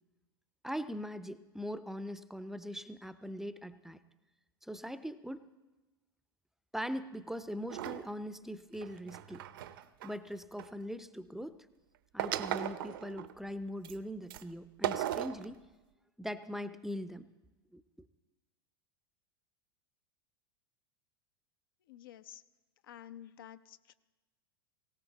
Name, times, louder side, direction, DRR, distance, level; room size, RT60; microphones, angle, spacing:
voice 1, 0.6-4.0 4.6-5.5 6.7-9.5 10.0-11.6 12.1-15.6 16.2-17.3 17.7-17.8, equal, 5° right, 14 dB, 0.6 m, -41 dB
sound 1, 7.7-8.1 8.8-10.7 12.2-13.3 13.8-14.0 14.3-14.4 14.8-15.5, right 12 dB, 60° right, 0.8 m, -37 dB
voice 2, 21.9-22.4 22.8-23.9, left 11 dB, 65° left, 13 dB, 0.7 m, -51 dB
18.5 x 18.0 x 4.0 m, 1.1 s
figure-of-eight pair, 85°, 13 cm